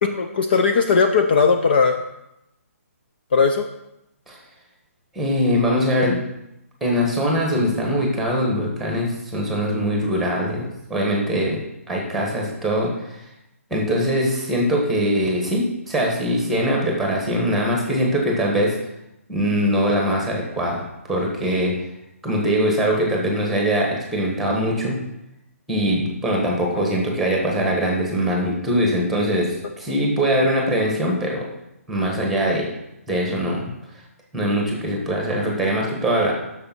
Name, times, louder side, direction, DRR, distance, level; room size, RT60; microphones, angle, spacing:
voice 1, 0.0-2.0 3.3-3.7, left 5 dB, 40° left, 6 dB, 0.5 m, -18 dB
voice 2, 5.1-6.2 6.8-11.6 11.9-13.3 13.7-18.7 19.3-21.7 22.2-24.9 25.7-31.4 31.9-32.7 33.1-33.7 34.3-36.3, equal, ahead, -1 dB, 1.3 m, -22 dB
6.7 x 6.2 x 5.9 m, 0.86 s
hypercardioid pair, 165°, 8 cm